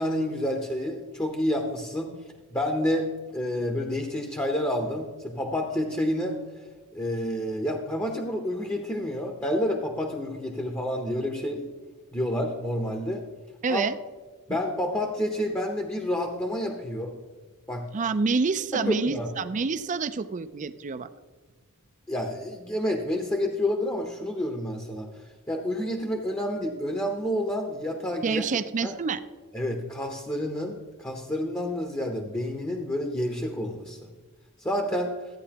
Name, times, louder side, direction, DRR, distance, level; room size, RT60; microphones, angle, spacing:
voice 1, 0.0-2.1 2.5-6.4 6.9-11.6 12.1-13.2 13.7-13.8 14.5-17.1 17.7-17.8 18.7-19.3 22.1-25.1 25.5-28.4 28.8-28.9 29.5-34.0 34.6-35.1, left 1 dB, 15° left, 3 dB, 0.8 m, -29 dB
voice 2, 13.6-14.0 17.9-21.1 28.2-29.2, right 4 dB, 35° right, 13 dB, 0.4 m, -27 dB
14.0 x 9.2 x 2.9 m, 1.3 s
head